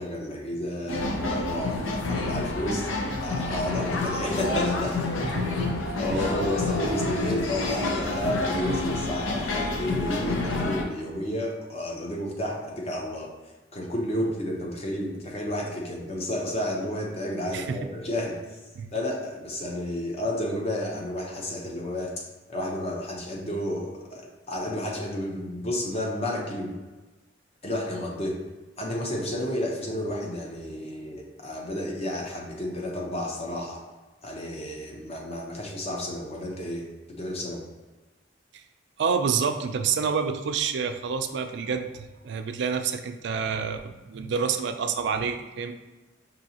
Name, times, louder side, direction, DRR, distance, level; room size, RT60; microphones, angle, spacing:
voice 1, 0.0-2.9 3.2-5.1 5.7-13.3 13.7-18.4 18.9-22.1 22.5-26.7 27.6-28.4 28.8-33.8 34.2-36.9 37.2-37.6, left 1 dB, 35° left, 0 dB, 0.7 m, -31 dB
sound 1, 0.9-10.8, left 2 dB, 85° left, 0.6 m, -28 dB
voice 2, 5.2-5.7 6.1-6.3 17.5-17.8 18.8-18.9 38.5-38.6 39.0-45.7, right 6 dB, 65° right, 7 dB, 0.4 m, -28 dB
5.4 x 2.7 x 2.8 m, 1.2 s
head